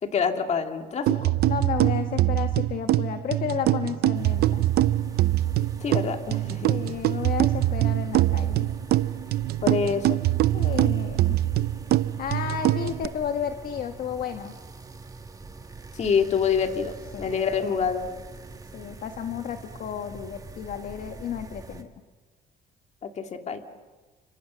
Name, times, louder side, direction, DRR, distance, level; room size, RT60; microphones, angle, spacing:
voice 1, 0.0-1.3 5.8-6.7 9.6-10.2 15.9-18.1 23.0-23.6, left 6 dB, 40° left, 5 dB, 2.5 m, -26 dB
sound 1, 1.1-13.1, right 14 dB, 70° right, 0.7 m, -24 dB
voice 2, 1.5-4.7 6.7-8.7 10.5-11.4 12.2-14.5 17.1-17.8 18.7-21.9, left 8 dB, 60° left, 6 dB, 1.4 m, -32 dB
sound 2, 4.1-21.8, right 3 dB, 20° right, 2.0 m, -44 dB
29.5 x 26.5 x 6.4 m, 1.3 s
cardioid pair, 110°, 17 cm